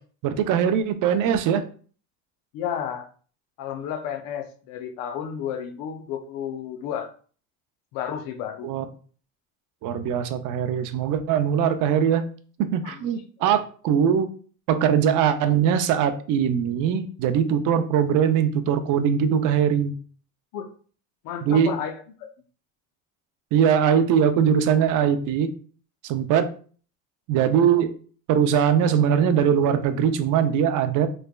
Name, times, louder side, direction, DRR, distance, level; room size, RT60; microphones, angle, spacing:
voice 1, 0.2-1.6 8.6-8.8 9.8-12.3 12.7-14.3 14.7-19.9 21.4-21.7 23.5-25.5 26.0-26.5 27.3-27.9 28.3-31.1, right 8 dB, 60° right, 9 dB, 0.5 m, -21 dB
voice 2, 2.5-3.1 3.6-7.1 7.9-8.7 12.8-13.1 13.4-13.5 20.5-20.7 21.2-22.0, left 8 dB, 70° left, 6 dB, 0.6 m, -32 dB
3.4 x 3.2 x 2.2 m, 0.42 s
cardioid pair, 140°, 36 cm